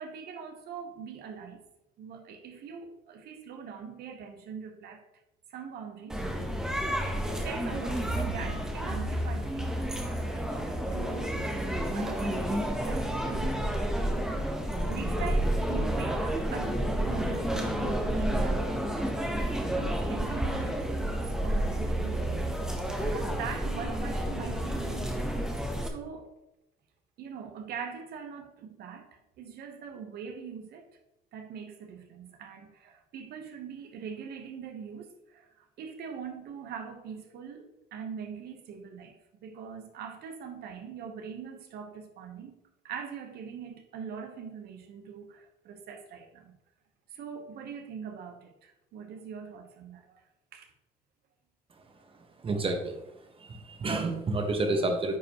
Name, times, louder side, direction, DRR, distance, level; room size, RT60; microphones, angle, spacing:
voice 1, 0.0-1.6 2.0-5.0 5.5-6.2 7.1-14.0 14.4-14.5 14.9-25.3 25.9-26.3 27.2-30.9 31.3-39.2 39.4-42.5 42.8-46.6 47.1-50.2 50.5-50.7, right 7 dB, 70° right, 1.1 m, -42 dB
sound 1, 6.1-25.9, right 1 dB, 5° right, 1.0 m, -30 dB
voice 2, 52.4-53.0 53.4-55.2, right 2 dB, 30° right, 1.3 m, -29 dB
9.3 x 5.1 x 3.0 m
cardioid pair, 110°, 17 cm